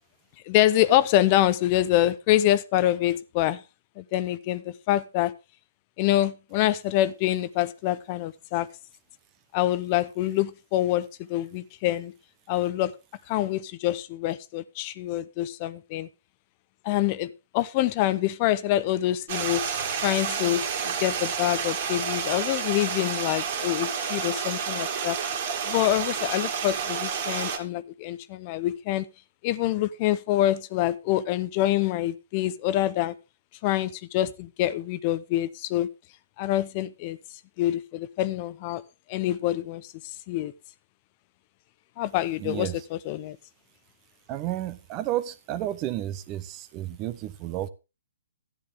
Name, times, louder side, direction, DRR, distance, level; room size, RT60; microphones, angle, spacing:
voice 1, 0.4-3.6 4.0-5.3 6.0-8.7 9.5-12.1 12.5-12.9 13.3-16.1 16.8-19.6 20.0-25.2 25.6-29.1 29.4-33.1 33.6-35.9 36.4-37.2 37.6-38.8 39.1-39.9 40.3-40.5 42.0-43.4, left 14 dB, 35° left, 0.6 m, -26 dB
Stream, 19.3-27.6, right 6 dB, 50° right, 2.6 m, -30 dB
voice 2, 42.4-42.8 44.3-47.7, right 13 dB, 30° right, 0.9 m, -31 dB
12.5 x 10.0 x 3.6 m
hypercardioid pair, 140°, 0 cm